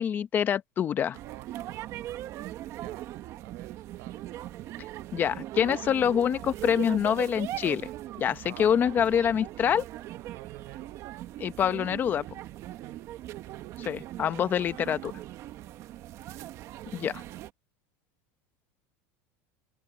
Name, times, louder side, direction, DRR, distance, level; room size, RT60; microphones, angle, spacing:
voice 1, 0.0-1.2 5.1-7.9 8.2-9.8 11.4-12.2 13.9-15.1 16.9-17.2, left 8 dB, 25° left, 0.8 m, -26 dB
sound 1, 1.1-17.5, right 14 dB, 40° right, 1.0 m, -40 dB
voice 2, 1.2-2.2 2.7-3.1 3.4-4.2 8.4-8.8 9.6-9.7 10.3-11.3 12.7-13.1 13.3-13.7, right 26 dB, 65° right, 4.3 m, -50 dB
open air
supercardioid pair, 155°, 8 cm